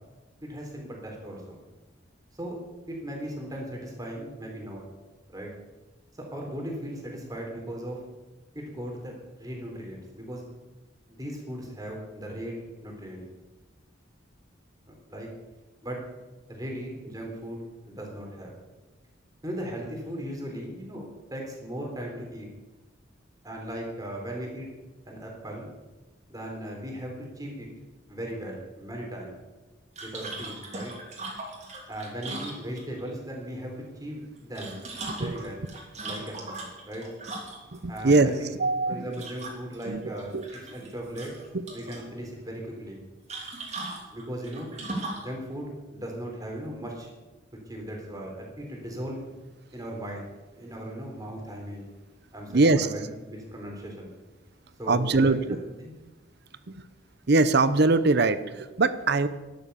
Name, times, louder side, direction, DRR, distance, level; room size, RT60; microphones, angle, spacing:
voice 1, 0.4-1.6 2.3-2.6 2.9-4.9 5.3-5.5 6.3-8.0 8.5-9.1 9.4-10.4 11.1-13.2 14.9-15.3 15.8-16.0 16.5-18.5 19.4-22.5 23.4-24.7 25.1-25.7 26.3-27.7 28.1-29.3 30.0-30.9 31.9-34.8 35.1-35.7 36.0-36.6 36.9-37.1 37.9-38.5 38.9-41.3 41.7-43.0 44.1-44.7 45.2-47.1 47.7-49.2 49.7-50.2 50.6-51.9 52.3-54.1 54.8-55.3 55.8-55.9, equal, 20° right, 0 dB, 3.7 m, -37 dB
sound 1, 30.0-33.1 34.4-37.8 39.1-39.9 40.2-40.9 41.2-42.0 43.3-45.3, right 2 dB, 35° right, 3.3 m, -38 dB
voice 2, 37.7-38.3 38.6-39.2 39.9-40.0 40.3-40.4 52.5-52.9 54.9-55.6 56.7-56.8 57.3-59.3, right 3 dB, 55° right, 14 dB, 0.7 m, -22 dB
12.0 x 11.5 x 6.9 m, 1.1 s
head